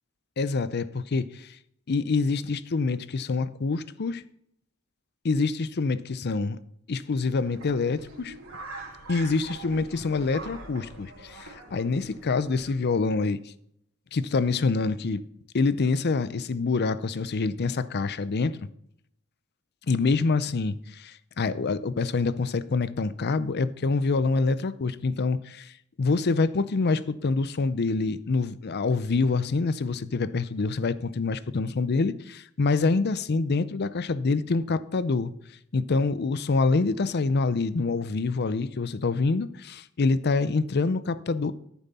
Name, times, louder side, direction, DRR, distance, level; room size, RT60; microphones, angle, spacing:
voice 1, 0.4-1.5 1.9-4.2 5.2-6.6 6.9-8.3 9.1-13.4 14.1-15.2 15.5-18.6 19.9-25.7 26.0-35.3 35.7-41.5, left 3 dB, 50° left, 0.5 m, -26 dB
sound 1, 7.4-12.7, right 2 dB, 80° right, 2.6 m, -44 dB
13.0 x 7.2 x 4.2 m
head